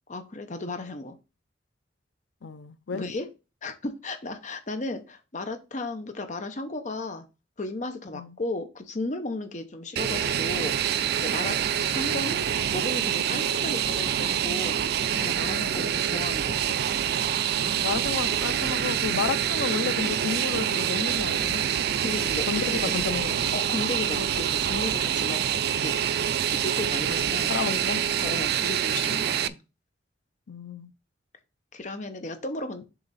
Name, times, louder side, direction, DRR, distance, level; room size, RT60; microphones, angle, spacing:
voice 1, 0.1-1.2 2.9-3.3 3.6-7.2 7.6-10.8 11.2-12.4 12.7-16.8 22.0-22.8 23.5-25.4 25.8-25.9 26.5-27.5 28.2-29.6 31.7-32.8, left 2 dB, 40° left, 0.8 m, -34 dB
voice 2, 2.4-3.0 8.1-8.4 11.8-12.2 15.8-15.9 17.6-21.7 22.5-23.6 27.5-28.0 30.5-30.9, left 5 dB, 75° left, 0.6 m, -32 dB
Fixed-wing aircraft airplane, 10.0-29.5, right 9 dB, 55° right, 0.3 m, -26 dB
7.0 x 3.9 x 4.1 m
head